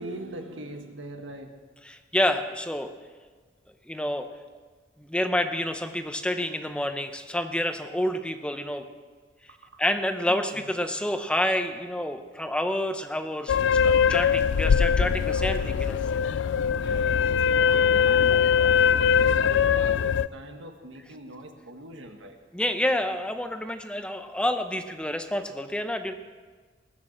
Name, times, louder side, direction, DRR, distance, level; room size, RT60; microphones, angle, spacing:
voice 1, 0.0-1.5 9.5-9.8 10.5-10.6 16.6-22.4, right 1 dB, 85° right, 4 dB, 1.7 m, -42 dB
voice 2, 1.8-2.9 3.9-4.3 5.0-8.8 9.8-16.0 22.5-26.1, left 1 dB, 5° left, 7 dB, 0.7 m, -28 dB
sound 1, 13.5-20.3, left 7 dB, 75° left, 0.4 m, -22 dB
20.0 x 6.8 x 7.4 m, 1.4 s
head